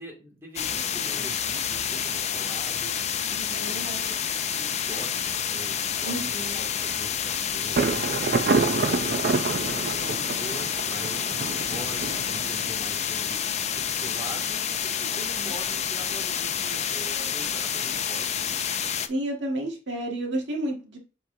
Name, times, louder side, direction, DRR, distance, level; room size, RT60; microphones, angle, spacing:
voice 1, 0.0-3.8 4.0-4.1 4.5-8.4 8.8-9.2 9.6-13.4 13.7-18.5, right 1 dB, 15° right, -2 dB, 2.2 m, -43 dB
sound 1, 0.6-19.1, left 8 dB, 40° left, 0.5 m, -29 dB
voice 2, 3.3-4.1 6.0-6.6 8.5-9.3 15.1-15.5 19.1-21.0, right 1 dB, 75° right, 1 dB, 1.6 m, -32 dB
Thunder, 7.8-13.4, right 4 dB, 55° right, 0.5 m, -28 dB
7.9 x 4.6 x 2.7 m, 0.32 s
head